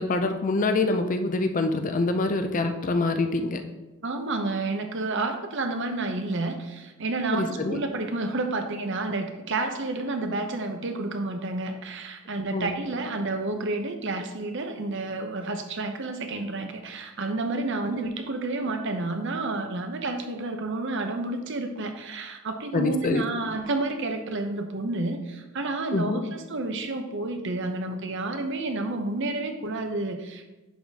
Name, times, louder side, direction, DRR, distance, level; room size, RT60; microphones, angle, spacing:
voice 1, 0.0-3.6 7.3-7.8 12.5-12.9 17.9-18.0 22.7-23.2 25.9-26.3, left 3 dB, 35° left, 7 dB, 0.5 m, -25 dB
voice 2, 4.0-30.5, right 2 dB, 55° right, 5 dB, 0.8 m, -30 dB
10.5 x 3.6 x 4.1 m, 1.1 s
head